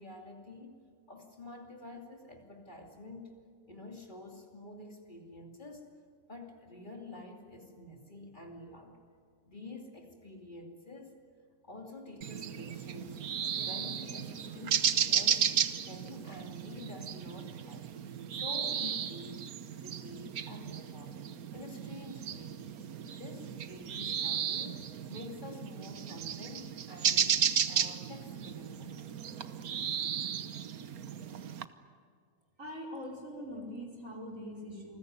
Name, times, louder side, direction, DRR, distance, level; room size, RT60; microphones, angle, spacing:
voice 1, 0.0-3.3 3.7-5.9 6.3-9.0 9.4-11.2 11.6-13.2 13.6-15.4 15.8-17.9 18.3-19.5 19.7-21.2 21.5-22.6 23.0-27.4 27.7-29.0, left 2 dB, 35° left, 2 dB, 2.9 m, -48 dB
sound 1, 12.2-31.6, right 8 dB, 80° right, 1.5 m, -34 dB
voice 2, 32.6-35.0, equal, 65° right, 0 dB, 5.3 m, -42 dB
28.5 x 21.0 x 9.7 m, 2.1 s
omnidirectional pair, 1.5 m